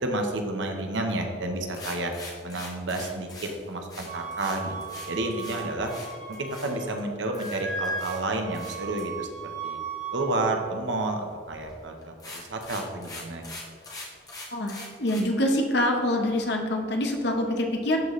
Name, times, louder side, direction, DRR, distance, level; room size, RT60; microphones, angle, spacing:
voice 1, 0.0-2.1 2.4-5.9 6.3-9.3 9.6-9.8 10.1-13.5, right 2 dB, 80° right, 3 dB, 0.9 m, -30 dB
sound 1, 1.7-7.0 7.3-8.2 8.5-9.0 11.5-11.7 12.0-15.2, left 2 dB, 20° left, 1.1 m, -43 dB
Wind instrument woodwind instrument, 4.1-7.0 7.2-10.3, right 4 dB, 40° right, 0.9 m, -36 dB
voice 2, 14.5-18.0, left 1 dB, 60° left, 3 dB, 1.0 m, -25 dB
12.0 x 4.0 x 3.2 m, 2.2 s
head